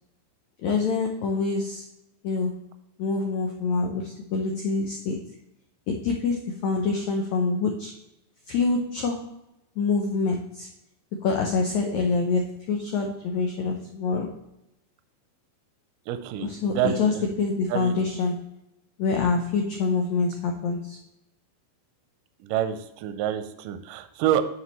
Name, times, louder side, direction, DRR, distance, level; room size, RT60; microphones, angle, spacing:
voice 1, 0.6-1.8 2.2-2.6 3.0-5.3 5.9-7.9 8.5-9.3 9.8-10.7 11.2-14.4 16.4-18.4 19.0-21.0, left 4 dB, 80° left, 2 dB, 1.6 m, -26 dB
voice 2, 16.1-17.3 17.7-18.0 22.4-24.4, right 11 dB, 80° right, 10 dB, 2.0 m, -27 dB
9.5 x 6.4 x 3.1 m, 0.87 s
omnidirectional pair, 4.3 m